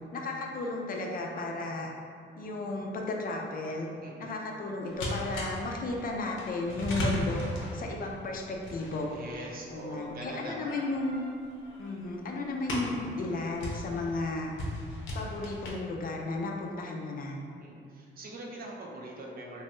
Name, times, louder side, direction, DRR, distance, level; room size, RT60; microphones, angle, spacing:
voice 1, 0.1-1.9 2.4-3.9 4.2-7.4 7.7-9.1 9.7-11.2 11.8-14.6 15.1-17.4, left 2 dB, 45° left, 0 dB, 0.4 m, -34 dB
voice 2, 4.0-4.3 9.1-10.7 17.6-19.6, right 1 dB, 45° right, -2 dB, 0.6 m, -42 dB
sound 1, 4.9-15.7, left 1 dB, 80° left, 0.7 m, -38 dB
3.0 x 2.2 x 3.0 m, 2.3 s
cardioid pair, 90°, 20 cm